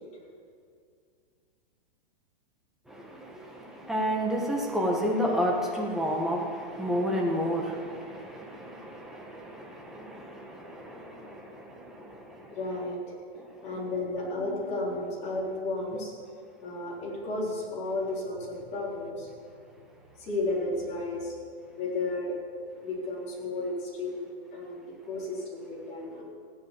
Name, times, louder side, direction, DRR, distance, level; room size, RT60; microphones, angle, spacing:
voice 1, 2.9-12.6 13.5-13.6, equal, ahead, -2 dB, 1.6 m, -31 dB
voice 2, 12.5-13.0 13.6-16.1 16.6-19.3 20.2-21.3 21.8-22.4 22.8-26.2, left 2 dB, 25° left, -5 dB, 4.1 m, -33 dB
15.5 x 10.0 x 7.4 m, 2.3 s
hypercardioid pair, 160°, 30 cm